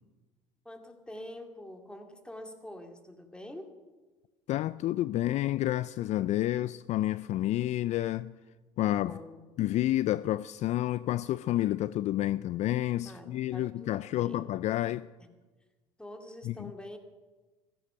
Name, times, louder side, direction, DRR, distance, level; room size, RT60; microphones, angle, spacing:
voice 1, 0.6-3.8 8.9-9.4 13.0-14.5 16.0-17.0, left 1 dB, 5° left, 2.5 m, -46 dB
voice 2, 4.5-8.3 8.8-9.1 9.6-15.1 16.4-16.7, left 14 dB, 50° left, 0.4 m, -29 dB
15.0 x 14.5 x 5.9 m
hypercardioid pair, 75°, 15 cm